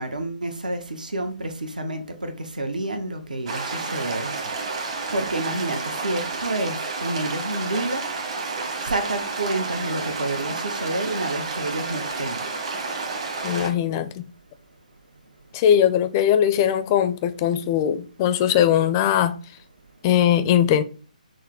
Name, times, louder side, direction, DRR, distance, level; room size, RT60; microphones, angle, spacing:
voice 1, 0.0-4.4 5.1-8.0 8.8-12.4, right 2 dB, 70° right, 0.9 m, -29 dB
sound 1, 3.5-13.7, right 3 dB, 40° right, 1.2 m, -30 dB
voice 2, 13.4-14.2 15.5-19.3 20.0-20.8, left 10 dB, 25° left, 0.4 m, -20 dB
6.2 x 2.1 x 3.7 m
figure-of-eight pair, 140°, 5 cm